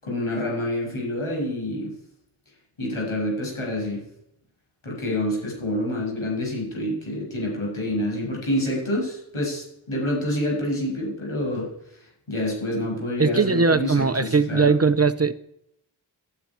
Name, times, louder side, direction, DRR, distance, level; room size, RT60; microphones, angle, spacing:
voice 1, 0.0-1.9 2.8-4.0 4.8-11.7 12.3-14.7, left 1 dB, 85° left, -1 dB, 7.2 m, -27 dB
voice 2, 13.2-15.3, right 4 dB, 30° right, 12 dB, 0.7 m, -20 dB
12.0 x 9.9 x 9.8 m, 0.78 s
wide cardioid pair, 70°, 49 cm